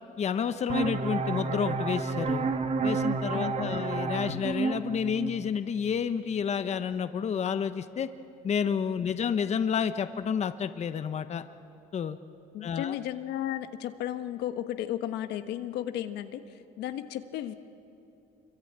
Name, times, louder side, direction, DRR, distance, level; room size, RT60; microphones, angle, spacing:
voice 1, 0.2-2.5 2.8-8.1 8.4-11.4 11.9-12.2 12.6-13.0, left 7 dB, 40° left, 10 dB, 1.0 m, -30 dB
sound 1, 0.7-6.1, right 4 dB, 40° right, 1.6 m, -31 dB
voice 2, 3.3-3.8 9.0-9.1 12.5-17.5, left 11 dB, 85° left, 9 dB, 1.3 m, -34 dB
26.5 x 23.5 x 8.9 m, 2.8 s
cardioid pair, 110°, 17 cm